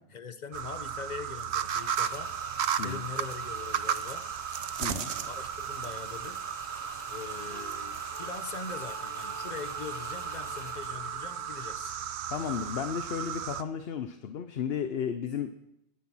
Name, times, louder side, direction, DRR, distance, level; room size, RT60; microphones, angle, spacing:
voice 1, 0.0-2.3 2.8-4.3 5.1-12.0, left 5 dB, 45° left, 1.0 m, -42 dB
sound 1, 0.5-13.6, right 8 dB, 85° right, 1.0 m, -35 dB
sound 2, 1.6-11.2, left 3 dB, 20° left, 0.7 m, -49 dB
voice 2, 4.8-5.1 12.3-15.5, left 7 dB, 70° left, 1.0 m, -33 dB
sound 3, 6.7-12.2, left 2 dB, 45° right, 4.2 m, -51 dB
19.0 x 9.6 x 6.1 m
omnidirectional pair, 1.1 m